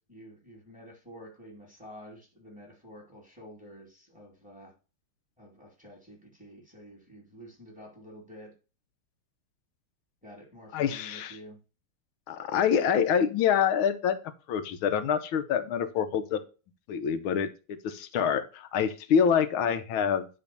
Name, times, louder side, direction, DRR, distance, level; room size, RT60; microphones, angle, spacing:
voice 1, 0.0-4.7 5.4-8.5 10.2-11.6, equal, 5° right, 0 dB, 2.4 m, -49 dB
voice 2, 10.7-11.4 12.3-14.2 14.5-16.4 16.9-20.3, left 7 dB, 75° left, 11 dB, 1.6 m, -26 dB
9.9 x 3.5 x 6.9 m, 0.33 s
omnidirectional pair, 2.4 m